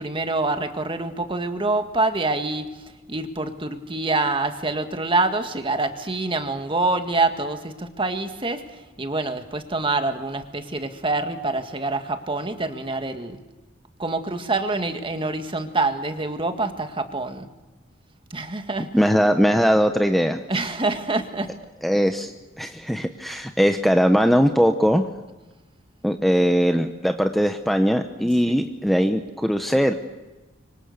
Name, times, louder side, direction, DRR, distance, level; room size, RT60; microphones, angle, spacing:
voice 1, 0.0-2.7 3.1-13.4 14.0-17.5 18.3-18.9 20.5-21.5 28.2-28.6, right 2 dB, 25° right, 7 dB, 1.8 m, -26 dB
voice 2, 18.9-20.4 21.8-22.3 22.6-25.1 26.0-29.9, equal, ahead, 6 dB, 0.9 m, -20 dB
25.0 x 25.0 x 6.6 m, 1.2 s
head